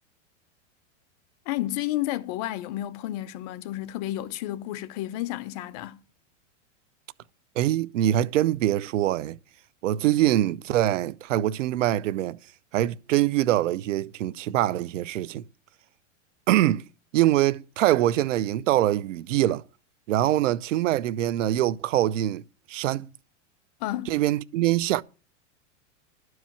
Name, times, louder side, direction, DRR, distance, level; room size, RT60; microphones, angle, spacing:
voice 1, 1.5-6.0 23.8-24.1, left 14 dB, 35° left, 0.5 m, -31 dB
voice 2, 7.6-9.4 9.8-12.4 12.7-15.4 16.5-16.8 17.1-19.6 20.1-22.4 22.7-23.1 24.1-25.0, right 13 dB, 75° right, 0.7 m, -24 dB
12.5 x 4.7 x 7.1 m
supercardioid pair, 150°, 37 cm